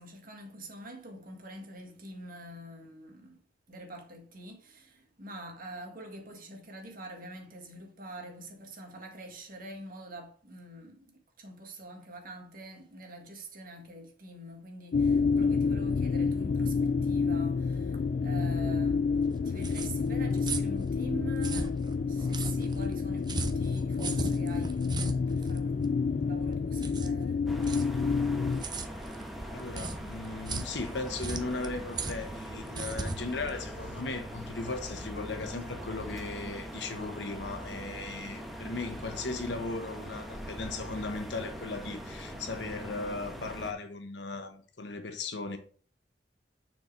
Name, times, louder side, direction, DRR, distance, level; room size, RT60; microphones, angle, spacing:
voice 1, 0.0-3.4 3.7-19.1 19.4-21.8 22.1-27.5, right 1 dB, 50° right, 1.8 m, -45 dB
sound 1, 14.9-28.6, left 5 dB, 50° left, 0.3 m, -29 dB
sound 2, 19.2-34.3, right 3 dB, 25° right, 0.7 m, -39 dB
sound 3, 27.5-43.7, equal, ahead, 1.1 m, -41 dB
voice 2, 29.5-45.6, left 3 dB, 75° left, 1.2 m, -37 dB
6.7 x 4.6 x 4.6 m
head